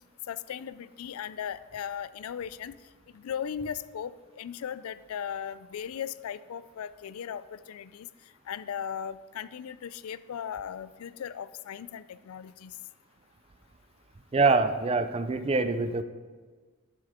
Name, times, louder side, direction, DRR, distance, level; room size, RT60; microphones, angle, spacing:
voice 1, 0.3-2.7 3.1-8.1 8.5-12.7, left 8 dB, 80° left, 16 dB, 0.4 m, -37 dB
voice 2, 14.3-16.0, right 3 dB, 25° right, 11 dB, 0.4 m, -24 dB
11.5 x 6.5 x 3.6 m, 1.4 s
head